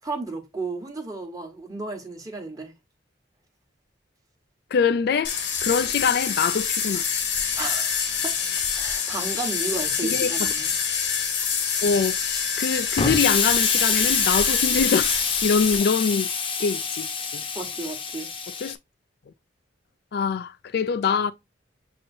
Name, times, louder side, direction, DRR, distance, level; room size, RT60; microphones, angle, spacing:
voice 1, 0.0-2.7 7.6-8.4 8.7-10.7 17.5-18.3, right 3 dB, 20° right, 1.1 m, -33 dB
voice 2, 4.7-7.0 10.0-10.5 11.8-12.1 12.6-15.1 15.4-16.3 16.6-17.1 17.3-17.4 18.6-18.8 20.1-21.3, left 5 dB, 60° left, 0.3 m, -24 dB
sound 1, 5.2-15.8, left 6 dB, 80° left, 1.3 m, -26 dB
Explosion, 13.0-18.7, left 5 dB, 30° left, 0.8 m, -26 dB
6.9 x 2.8 x 2.6 m
head